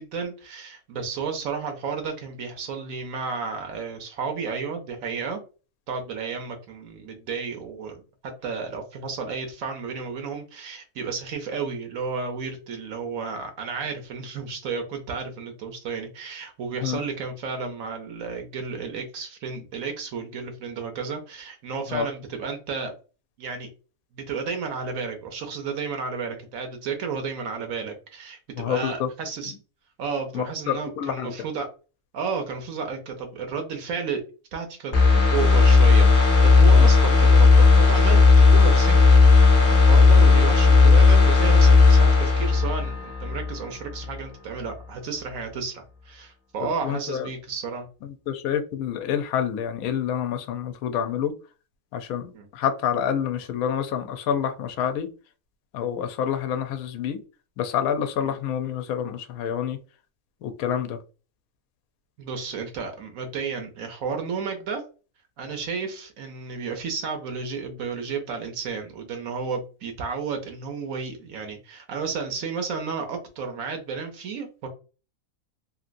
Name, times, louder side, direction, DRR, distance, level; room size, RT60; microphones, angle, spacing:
voice 1, 0.0-5.4 5.9-22.9 23.4-23.7 24.1-29.5 30.0-31.7 32.1-34.2 34.5-39.0 39.6-47.9 52.3-52.5 58.2-58.4 62.2-64.8 65.4-74.7, right 5 dB, 70° right, 1.0 m, -32 dB
voice 2, 28.6-29.1 29.4-29.5 30.3-31.3 36.7-36.9 46.6-47.3 48.3-51.3 51.9-55.1 55.7-57.2 57.6-59.8 60.4-61.0, left 8 dB, 75° left, 1.0 m, -28 dB
sound 1, 34.9-43.6 43.9-44.1, left 4 dB, 40° left, 0.8 m, -15 dB
3.0 x 2.6 x 2.5 m
omnidirectional pair, 1.6 m